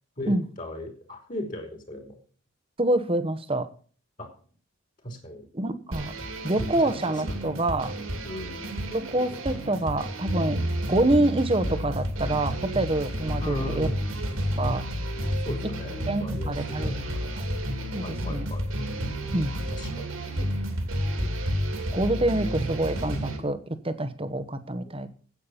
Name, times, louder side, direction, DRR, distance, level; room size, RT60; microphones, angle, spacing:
voice 1, 0.2-2.1 4.2-4.3 5.0-5.4 6.5-7.0 7.2-7.4 8.2-8.8 13.4-13.9 15.4-17.4 18.0-18.7 19.7-20.1 22.0-22.7 24.9-25.0, equal, 40° left, 3 dB, 2.9 m, -37 dB
voice 2, 2.8-3.7 5.5-6.1 6.4-8.0 8.9-10.6 10.9-13.9 14.6-14.9 16.1-17.0 17.9-18.5 19.3-19.5 21.9-25.1, right 1 dB, 25° right, 11 dB, 1.0 m, -26 dB
sound 1, 5.9-23.4, equal, 80° right, 2.9 m, -31 dB
9.0 x 8.5 x 7.1 m, 0.43 s
head